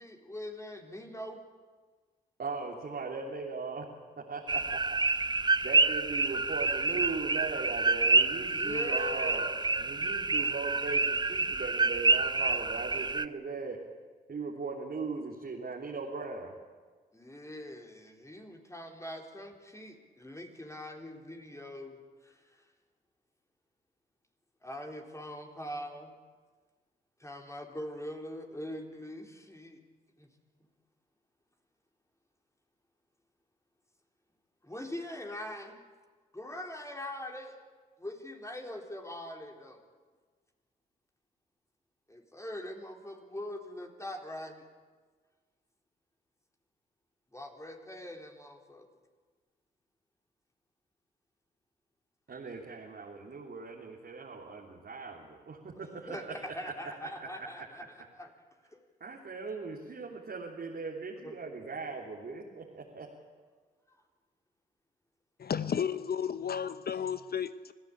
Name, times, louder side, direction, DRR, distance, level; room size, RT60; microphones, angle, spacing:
voice 1, 0.0-1.4 8.5-9.6 17.1-22.6 24.6-26.1 27.2-29.8 30.2-30.3 34.6-35.8 36.3-37.6 38.0-39.8 42.1-44.6 47.3-48.9 55.8-58.3 58.7-58.8 61.2-61.4 63.9-64.0, left 1 dB, 15° left, 4.2 m, -42 dB
voice 2, 2.4-3.9 4.2-5.0 5.6-13.8 14.3-16.5 52.3-56.3 57.3-57.5 59.0-63.1, right 4 dB, 50° right, 3.3 m, -39 dB
sound 1, 4.5-13.2, right 3 dB, 20° right, 0.9 m, -28 dB
voice 3, 65.4-67.7, left 7 dB, 50° left, 0.9 m, -33 dB
26.0 x 15.5 x 8.9 m
hypercardioid pair, 40°, 20 cm